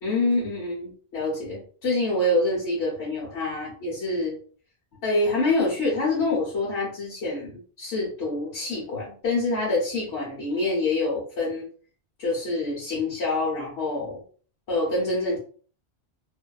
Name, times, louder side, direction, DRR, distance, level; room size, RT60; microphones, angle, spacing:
voice 1, 0.0-4.4 5.0-11.7 12.2-14.2 14.7-15.4, left 2 dB, 85° left, -6 dB, 1.1 m, -26 dB
2.6 x 2.2 x 2.2 m, 0.43 s
omnidirectional pair, 1.1 m